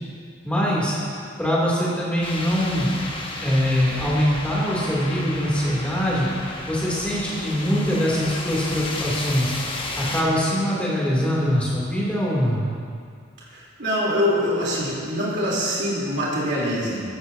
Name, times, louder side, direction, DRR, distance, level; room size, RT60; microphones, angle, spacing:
voice 1, 0.4-1.0 1.4-2.9 3.4-6.3 6.7-9.5 10.0-12.6, equal, 5° left, -7 dB, 2.8 m, -23 dB
sound 1, 2.2-10.2, left 2 dB, 25° left, 1.1 m, -33 dB
voice 2, 13.5-17.0, equal, 55° right, -6 dB, 3.5 m, -24 dB
15.0 x 13.0 x 2.8 m, 2.2 s
head